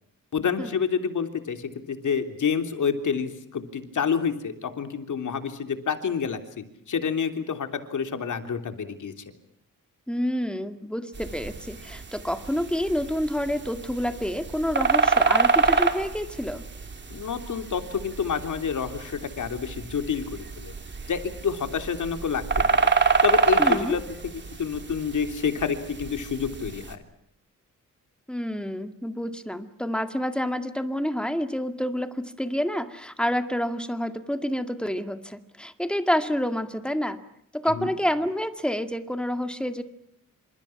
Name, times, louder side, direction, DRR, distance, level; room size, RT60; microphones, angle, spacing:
voice 1, 0.3-9.1 17.1-20.7 21.1-22.4 22.7-22.9 23.2-24.3 24.6-27.0 37.6-37.9, left 6 dB, 60° left, 7 dB, 3.4 m, -28 dB
voice 2, 10.1-16.6 23.6-24.0 28.3-37.2 37.5-39.8, equal, 5° left, 8 dB, 2.0 m, -28 dB
sound 1, 11.1-26.9, right 4 dB, 35° right, 3.1 m, -27 dB
29.0 x 27.0 x 6.0 m, 0.75 s
wide cardioid pair, 160°, 33 cm